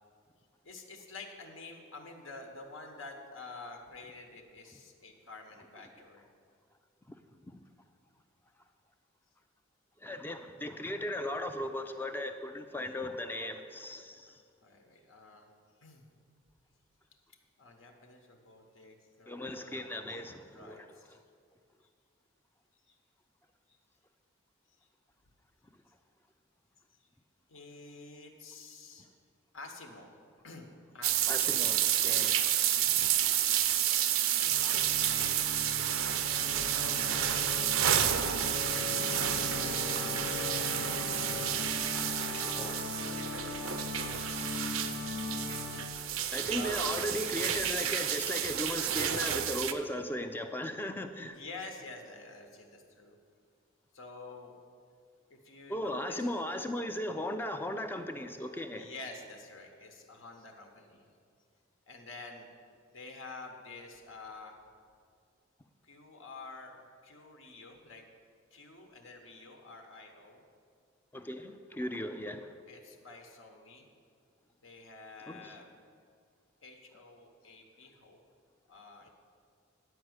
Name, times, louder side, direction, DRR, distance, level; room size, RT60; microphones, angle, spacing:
voice 1, 0.6-6.3 14.3-15.5 15.8-16.1 17.6-19.7 20.0-21.2 22.8-23.0 23.7-23.8 24.8-24.9 27.0-27.1 27.5-29.1 29.5-30.1 30.4-31.4 32.7-33.1 36.7-37.7 39.0-41.3 46.5-46.9 51.2-53.2 53.9-54.6 55.3-56.3 58.8-61.1 61.9-62.5 62.9-64.5 65.8-66.7 67.0-68.0 68.5-70.4 72.7-73.9 74.6-75.7 76.6-78.2 78.7-79.1, left 3 dB, 80° left, 3 dB, 1.1 m, -49 dB
voice 2, 10.0-14.4 19.3-20.9 31.3-32.6 32.9-33.4 42.3-42.8 43.1-43.2 46.3-51.4 55.7-58.9 71.1-72.5 75.2-75.6, left 1 dB, 10° left, 7 dB, 0.3 m, -37 dB
sound 1, 31.0-49.7, right 10 dB, 90° right, 0.5 m, -30 dB
Organ, 34.4-46.2, left 4 dB, 55° left, 0.6 m, -39 dB
10.0 x 4.7 x 7.9 m, 2.2 s
head